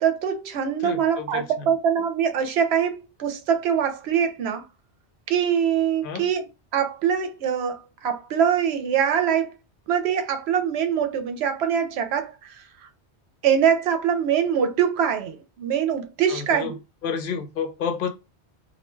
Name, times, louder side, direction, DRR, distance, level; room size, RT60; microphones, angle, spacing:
voice 1, 0.0-4.6 5.3-6.5 6.7-9.5 9.9-12.6 13.4-16.8, right 8 dB, 75° right, 0.8 m, -23 dB
voice 2, 0.8-1.7 6.0-6.3 16.3-16.7 17.0-18.1, left 6 dB, 60° left, 0.6 m, -30 dB
2.4 x 2.2 x 3.0 m
omnidirectional pair, 1.1 m